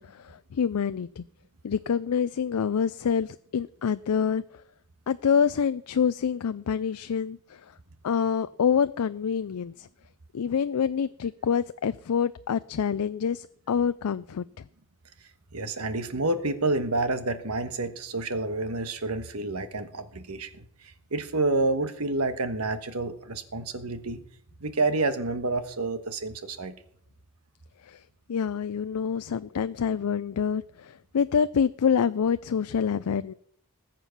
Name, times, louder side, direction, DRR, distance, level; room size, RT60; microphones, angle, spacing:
voice 1, 0.1-1.2 1.6-4.4 5.1-7.6 8.0-9.9 10.3-14.6 27.9-28.0 28.3-33.3, left 7 dB, 85° left, 13 dB, 0.4 m, -26 dB
voice 2, 15.5-20.6 21.1-24.2 24.6-26.7, right 2 dB, 80° right, 10 dB, 1.4 m, -29 dB
19.5 x 7.5 x 6.0 m, 0.65 s
head